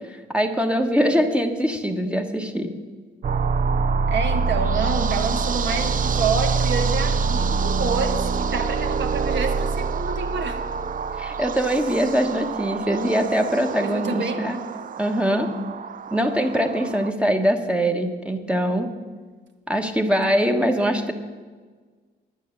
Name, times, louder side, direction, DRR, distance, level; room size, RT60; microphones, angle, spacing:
voice 1, 0.1-2.8 11.2-14.6 15.0-15.6 16.1-18.9 19.7-21.1, equal, 5° right, 4 dB, 1.2 m, -22 dB
sound 1, 3.2-17.1, right 5 dB, 40° right, 0.6 m, -25 dB
voice 2, 4.1-10.6 13.8-14.4, right 4 dB, 65° right, 4 dB, 1.8 m, -28 dB
10.5 x 9.5 x 7.8 m, 1.5 s
cardioid pair, 90°, 20 cm